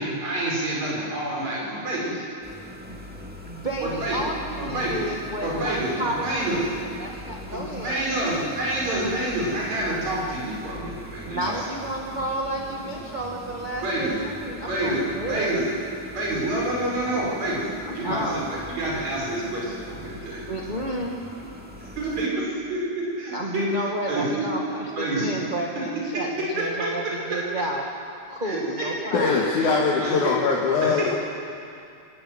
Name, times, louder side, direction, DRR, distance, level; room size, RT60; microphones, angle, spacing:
voice 1, 0.0-2.1 3.8-4.2 4.6-5.1 5.4-6.7 7.5-11.6 13.8-14.2 14.7-15.0 15.3-15.7 16.1-17.7 17.9-20.5 21.8-23.6 24.1-24.3 25.0-25.4 26.6-27.4 28.4-28.9 29.5-29.7 30.0-30.2 30.8-31.1, right 1 dB, 65° right, -4 dB, 6.9 m, -28 dB
sound 1, 2.4-22.3, left 1 dB, 5° right, 1.5 m, -41 dB
voice 2, 3.4-6.6 6.9-8.1 8.9-9.3 11.2-15.6 17.9-18.5 20.5-21.2 23.3-27.8 28.3-29.3, right 1 dB, 20° right, -1 dB, 1.2 m, -31 dB
voice 3, 29.1-31.1, left 4 dB, 85° left, -2 dB, 3.0 m, -22 dB
25.0 x 13.5 x 9.7 m, 2.5 s
omnidirectional pair, 3.4 m